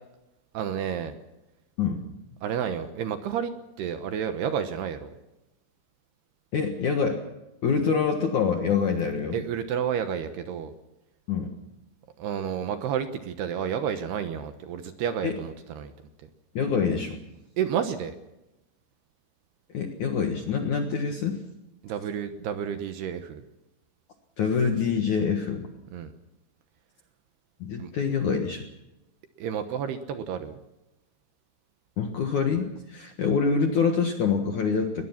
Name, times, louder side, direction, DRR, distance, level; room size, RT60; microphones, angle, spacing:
voice 1, 0.5-1.2 2.4-3.5 3.8-5.1 9.3-10.7 12.2-15.9 17.6-18.1 21.8-23.4 25.9-26.1 27.8-27.9 29.4-30.6, right 8 dB, 70° right, 8 dB, 2.8 m, -30 dB
voice 2, 6.5-7.2 7.6-9.4 11.3-11.6 15.2-15.4 16.5-17.2 19.7-21.4 24.4-25.7 27.6-28.6 32.0-35.0, left 6 dB, 60° left, 4 dB, 2.1 m, -25 dB
21.0 x 21.0 x 5.9 m, 0.93 s
omnidirectional pair, 5.5 m